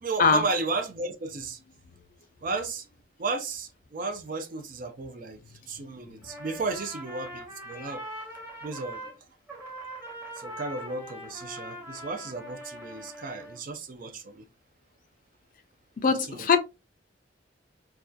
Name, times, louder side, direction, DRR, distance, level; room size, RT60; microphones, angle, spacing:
voice 1, 0.0-1.6 2.4-2.9 3.2-5.4 5.7-8.0 8.6-9.0 10.4-14.4 16.3-16.5, right 3 dB, 45° right, 0.4 m, -34 dB
Trumpet, 6.2-9.2 9.5-13.6, equal, 10° right, 0.7 m, -42 dB
voice 2, 16.0-16.6, left 5 dB, 45° left, 0.4 m, -21 dB
2.3 x 2.2 x 2.5 m
head